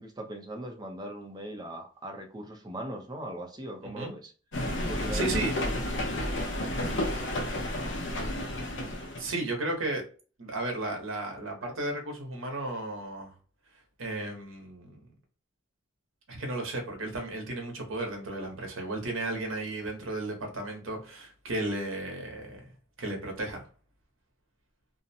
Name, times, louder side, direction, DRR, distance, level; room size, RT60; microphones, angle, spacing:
voice 1, 0.0-4.3 4.9-5.4, right 1 dB, 20° right, 0.5 m, -39 dB
sound 1, 4.5-9.4, left 1 dB, 65° left, 0.6 m, -31 dB
voice 2, 5.1-5.5 9.2-10.0 10.4-13.3 14.0-15.1 16.3-22.6 23.0-23.7, right 2 dB, 80° right, 0.9 m, -34 dB
2.6 x 2.1 x 2.7 m
head